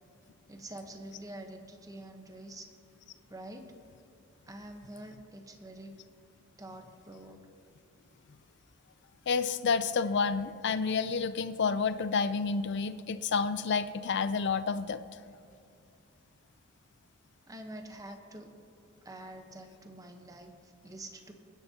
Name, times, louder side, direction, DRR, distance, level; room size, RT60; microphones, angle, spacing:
voice 1, 0.5-2.7 3.3-3.7 4.4-6.0 6.6-7.4 17.5-18.5 19.0-21.3, right 1 dB, 15° right, 5 dB, 1.0 m, -46 dB
voice 2, 9.3-15.0, left 5 dB, 55° left, 12 dB, 0.5 m, -29 dB
23.0 x 10.5 x 2.8 m, 2.3 s
head